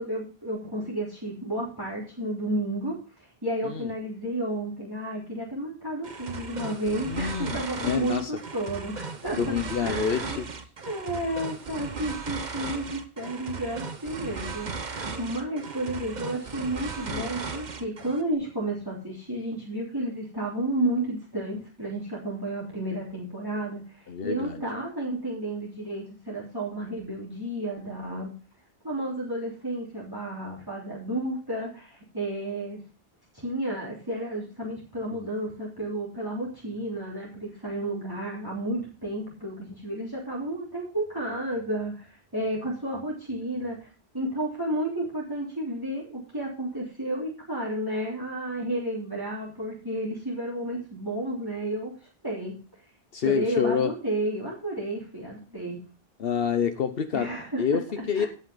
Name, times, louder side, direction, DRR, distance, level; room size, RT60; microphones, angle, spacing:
voice 1, 0.0-9.5 9.8-10.4 10.8-28.3 28.8-32.8 33.3-43.9 44.1-51.9 52.2-52.5 53.2-55.8 57.1-57.6 58.1-58.3, right 1 dB, 20° right, -5 dB, 3.4 m, -32 dB
sound 1, 6.0-18.3, right 4 dB, 50° right, 1.1 m, -37 dB
voice 2, 7.1-8.4 9.4-10.5 17.1-17.3 24.1-24.6 35.1-35.3 53.1-53.9 56.2-58.3, left 7 dB, 70° left, 9 dB, 1.0 m, -28 dB
17.5 x 5.9 x 3.9 m, 0.36 s
omnidirectional pair, 1.0 m